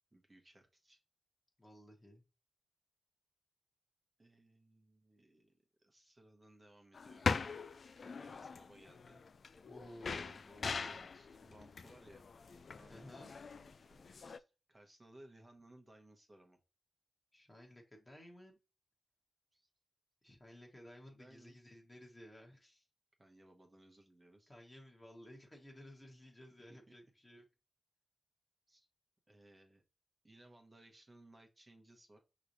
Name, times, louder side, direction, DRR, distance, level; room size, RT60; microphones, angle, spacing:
voice 1, 0.1-1.0 4.2-7.4 8.0-9.2 10.7-12.3 12.6-14.4 14.7-16.6 19.5-19.7 21.1-21.6 23.2-24.5 26.6-26.9 28.7-28.9 29.3-29.8 30.2-32.2, right 1 dB, 25° right, 3 dB, 1.2 m, -62 dB
voice 2, 1.6-2.2 9.7-11.0 12.9-13.3 17.3-18.6 20.2-22.8 24.5-27.4, left 1 dB, 20° left, 0 dB, 1.3 m, -56 dB
sound 1, 6.9-14.4, left 5 dB, 55° left, 0.3 m, -42 dB
5.8 x 3.1 x 2.7 m, 0.30 s
wide cardioid pair, 90°, 0 cm